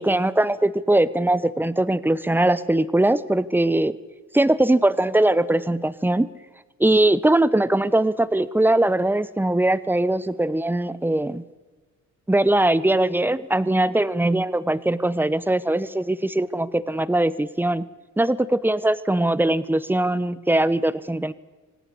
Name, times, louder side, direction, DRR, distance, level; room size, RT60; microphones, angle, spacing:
voice 1, 0.0-3.9 4.3-6.3 6.8-11.4 12.3-17.8 18.2-21.3, right 1 dB, 5° right, 17 dB, 1.1 m, -21 dB
25.5 x 17.5 x 8.6 m, 1.3 s
cardioid pair, 90°, 30 cm